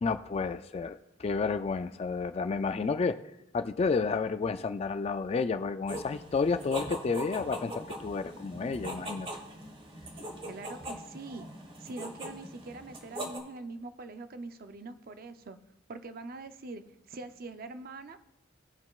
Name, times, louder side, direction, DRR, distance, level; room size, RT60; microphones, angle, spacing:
voice 1, 0.0-3.2 3.5-9.3, left 4 dB, 30° left, 10 dB, 0.3 m, -31 dB
sound 1, 5.9-13.4, right 1 dB, 30° right, 1.1 m, -41 dB
voice 2, 10.5-11.5 11.8-15.6 15.9-18.2, right 3 dB, 50° right, 9 dB, 0.6 m, -43 dB
17.0 x 5.8 x 2.4 m, 0.87 s
head